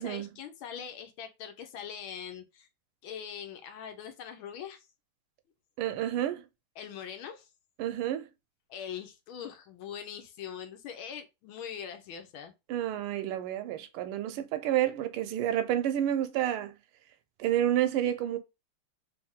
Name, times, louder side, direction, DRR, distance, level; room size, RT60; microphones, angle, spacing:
voice 1, 0.0-2.7 3.0-4.9 6.8-7.5 8.7-12.5, left 8 dB, 75° left, 1.4 m, -42 dB
voice 2, 5.8-6.4 7.8-8.3 12.7-16.7 17.4-18.4, right 11 dB, 80° right, 1.5 m, -29 dB
3.4 x 3.3 x 3.5 m
omnidirectional pair, 2.4 m